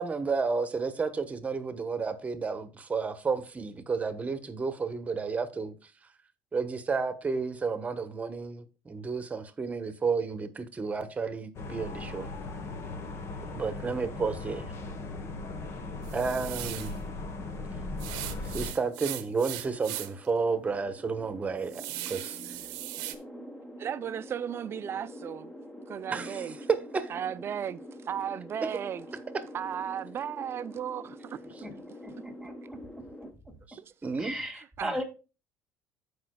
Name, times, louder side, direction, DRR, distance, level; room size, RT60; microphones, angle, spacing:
voice 1, 0.0-5.7 6.5-12.3 13.5-14.6 16.1-16.9 18.4-22.4 26.1-26.4 26.7-26.8 33.7-34.3, right 4 dB, 25° right, 1.1 m, -31 dB
sound 1, 11.5-18.7, left 3 dB, 45° left, 1.2 m, -38 dB
sound 2, 16.0-17.0 18.0-20.3 20.7-20.8 21.2-23.1, right 16 dB, 80° right, 0.8 m, -39 dB
sound 3, 17.7-33.3, equal, 15° left, 1.3 m, -46 dB
voice 2, 23.8-25.5 25.9-26.6 27.1-27.8 28.1-29.1 29.5-31.7 33.8-33.9 34.5-35.0, right 9 dB, 40° right, 0.5 m, -35 dB
voice 3, 32.0-32.8 34.2-35.0, equal, ahead, 2.4 m, -37 dB
15.0 x 5.1 x 2.3 m
supercardioid pair, 95°, 6 cm